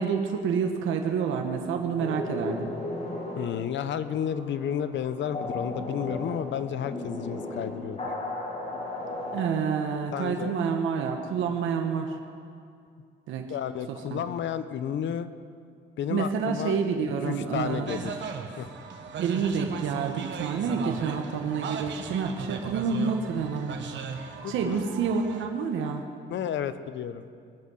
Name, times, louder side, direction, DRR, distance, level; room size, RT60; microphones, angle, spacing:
voice 1, 0.0-2.7 9.3-12.1 13.3-13.5 14.1-14.2 16.1-17.9 19.2-23.7 24.2-26.0, right 6 dB, 85° right, 3 dB, 1.2 m, -28 dB
sound 1, 2.0-9.6, left 2 dB, 30° left, 2.4 m, -36 dB
voice 2, 3.4-8.1 10.1-10.6 13.5-15.3 16.0-16.8 17.2-18.2 18.6-18.7 24.4-24.8 26.3-27.2, left 9 dB, 70° left, 12 dB, 0.8 m, -32 dB
sound 2, 17.9-25.4, right 6 dB, 70° right, 1.4 m, -37 dB
21.0 x 7.6 x 6.3 m, 2.3 s
cardioid pair, 90°, 20 cm